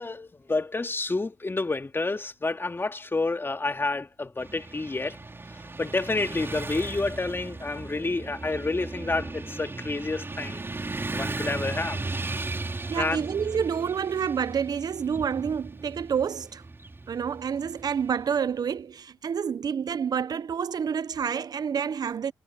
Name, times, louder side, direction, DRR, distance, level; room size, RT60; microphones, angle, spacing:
voice 1, 0.0-5.2 5.5-10.6 11.1-12.0 12.9-13.3, left 3 dB, 30° left, 3.0 m, -29 dB
Motorcycle / Traffic noise roadway noise, 4.4-18.5, right 3 dB, 30° right, 5.2 m, -36 dB
voice 2, 12.9-16.6 17.1-22.3, right 7 dB, 60° right, 1.0 m, -28 dB
hypercardioid pair, 40°, 8 cm